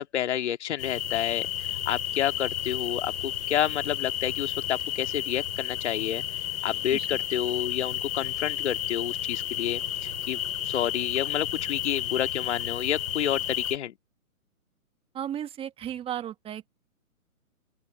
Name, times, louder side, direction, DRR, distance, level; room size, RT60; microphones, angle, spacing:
voice 1, 0.0-6.2 6.6-13.9, left 10 dB, 50° left, 2.1 m, -30 dB
sound 1, 0.8-13.8, left 11 dB, 70° left, 4.1 m, -32 dB
voice 2, 15.1-16.7, right 10 dB, 15° right, 1.5 m, -34 dB
open air
hypercardioid pair, 135°, 44 cm